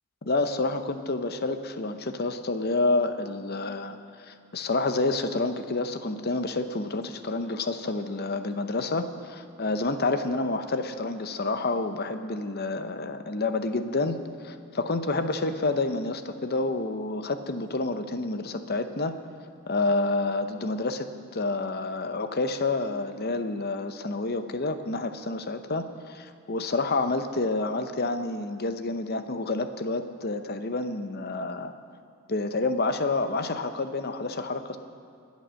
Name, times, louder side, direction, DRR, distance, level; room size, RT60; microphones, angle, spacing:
voice 1, 0.2-14.2 14.4-19.1 19.7-31.7 32.3-34.8, left 3 dB, 45° left, 9 dB, 0.8 m, -29 dB
23.0 x 8.4 x 6.4 m, 2.4 s
head